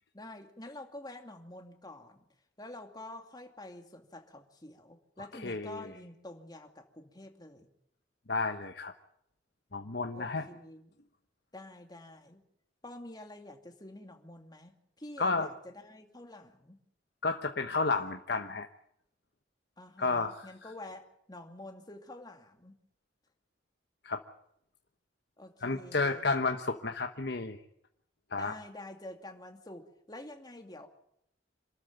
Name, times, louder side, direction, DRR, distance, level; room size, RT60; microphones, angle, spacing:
voice 1, 0.1-2.2 2.6-7.7 10.1-10.9 11.5-12.4 12.8-16.8 19.8-22.8 25.4-26.2 28.4-30.9, left 1 dB, 20° left, 4 dB, 2.4 m, -48 dB
voice 2, 5.3-5.8 8.3-8.9 9.7-10.5 15.2-15.5 17.2-18.7 20.0-20.5 24.0-24.2 25.6-27.6 28.3-28.5, left 3 dB, 60° left, 6 dB, 1.2 m, -31 dB
27.0 x 13.5 x 9.1 m, 0.75 s
head